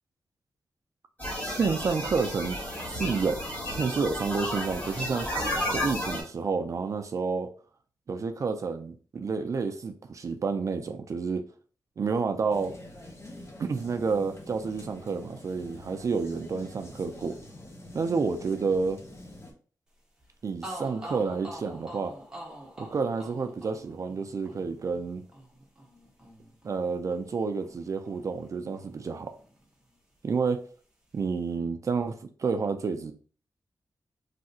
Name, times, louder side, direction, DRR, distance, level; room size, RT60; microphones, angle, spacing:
sound 1, 1.2-6.2, left 1 dB, 25° left, 1.7 m, -32 dB
voice 1, 1.4-2.6 2.9-5.3 5.7-7.5 8.1-11.4 12.0-12.7 13.6-17.4 17.9-19.0 20.4-22.1 22.8-25.2 26.6-29.3 30.2-30.6 31.1-32.1 32.4-33.1, right 5 dB, 50° right, 7 dB, 0.4 m, -29 dB
sound 2, 12.5-19.5, left 1 dB, 40° left, 0.9 m, -46 dB
sound 3, 20.2-20.3 20.6-28.5 28.7-29.9, right 1 dB, 10° right, 1.0 m, -45 dB
3.3 x 2.7 x 2.7 m, 0.40 s
wide cardioid pair, 115°, 7 cm